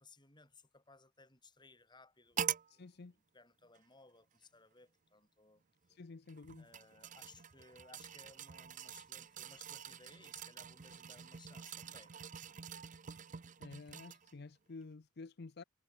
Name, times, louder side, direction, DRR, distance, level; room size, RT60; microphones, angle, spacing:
voice 1, 0.0-2.5 2.7-2.8 3.3-6.0 6.6-12.2, left 3 dB, 25° left, 7.6 m, -62 dB
sound 1, 2.4-2.7 3.7-3.8 6.3-14.3 14.8-14.9, right 9 dB, 40° right, 0.6 m, -45 dB
voice 2, 2.7-3.2 5.9-6.7 13.6-15.6, left 3 dB, 55° left, 0.6 m, -51 dB
head